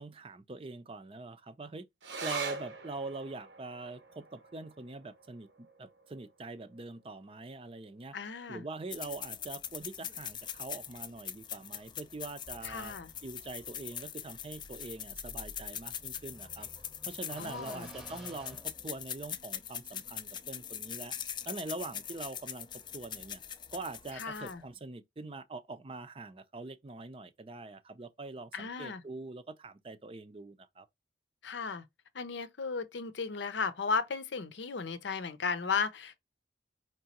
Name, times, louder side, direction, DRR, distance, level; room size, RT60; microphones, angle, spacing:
voice 1, 0.0-1.8 2.2-8.2 8.5-12.9 13.2-16.7 17.1-21.1 21.5-22.7 22.9-23.4 23.7-30.9, right 3 dB, 30° right, 0.5 m, -43 dB
sound 1, 2.0-8.8 9.1-9.2 9.5-10.2 10.8-10.9, right 4 dB, 80° right, 0.9 m, -45 dB
voice 2, 8.1-8.7 12.6-13.1 17.4-17.9 24.1-24.6 28.5-29.0 31.4-31.8 32.1-36.2, left 5 dB, 85° left, 0.7 m, -35 dB
sound 2, 8.9-24.7, left 9 dB, 25° left, 0.4 m, -42 dB
sound 3, 12.5-19.4, equal, 5° right, 0.8 m, -53 dB
4.7 x 3.0 x 2.9 m
head